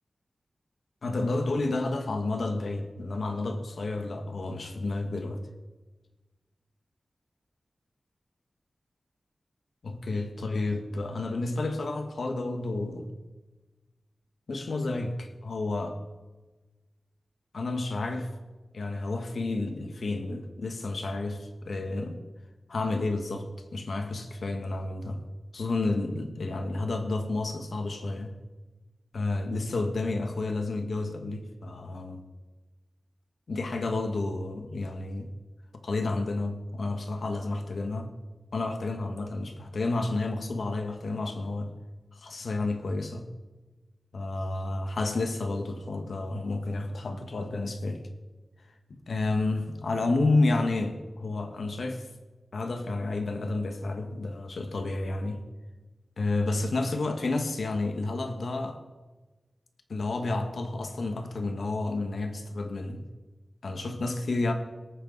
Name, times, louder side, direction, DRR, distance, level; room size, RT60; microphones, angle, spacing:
voice 1, 1.0-5.4 9.8-13.1 14.5-16.0 17.5-18.3 18.7-22.2 22.7-25.2 25.5-28.3 29.1-32.2 33.5-35.3 35.8-38.2 38.5-41.7 42.1-43.3 44.1-48.0 49.1-52.1 52.5-55.4 56.2-58.8 59.9-63.0 63.6-64.5, left 2 dB, 85° left, 6 dB, 1.4 m, -30 dB
18.5 x 9.1 x 4.0 m, 1.2 s
wide cardioid pair, 75°, 0 cm